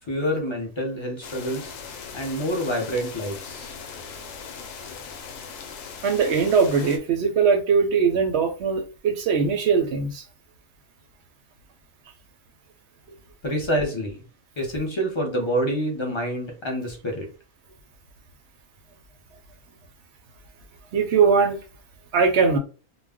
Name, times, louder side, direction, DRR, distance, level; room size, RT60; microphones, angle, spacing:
voice 1, 0.1-1.7 2.1-3.7 13.4-14.2 14.6-17.3, equal, 35° left, 0.5 m, -27 dB
sound 1, 1.2-7.0, left 6 dB, 75° left, 0.9 m, -39 dB
voice 2, 6.0-10.2 20.9-21.6 22.1-22.6, right 5 dB, 65° right, 0.7 m, -20 dB
2.4 x 2.1 x 3.5 m
omnidirectional pair, 1.4 m